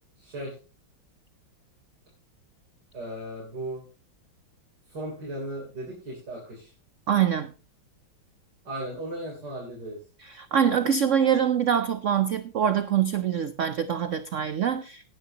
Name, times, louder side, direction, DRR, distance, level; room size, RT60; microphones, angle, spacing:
voice 1, 0.2-0.6 2.9-3.8 4.9-6.7 8.7-10.0, right 1 dB, 55° right, -3 dB, 4.0 m, -36 dB
voice 2, 7.1-7.5 10.2-15.0, right 8 dB, 85° right, 11 dB, 0.6 m, -24 dB
18.0 x 9.8 x 2.9 m, 0.33 s
omnidirectional pair, 2.2 m